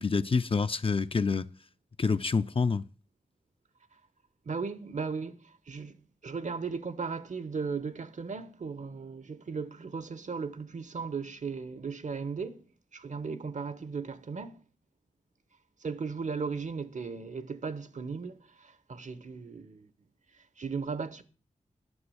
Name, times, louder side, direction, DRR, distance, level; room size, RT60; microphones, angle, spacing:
voice 1, 0.0-1.5 2.0-2.8, left 4 dB, 40° left, 0.5 m, -27 dB
voice 2, 4.4-6.0 6.2-12.6 12.9-14.6 15.8-19.9 20.6-21.2, right 5 dB, 65° right, 1.0 m, -36 dB
9.7 x 6.1 x 7.8 m
cardioid pair, 55°, 14 cm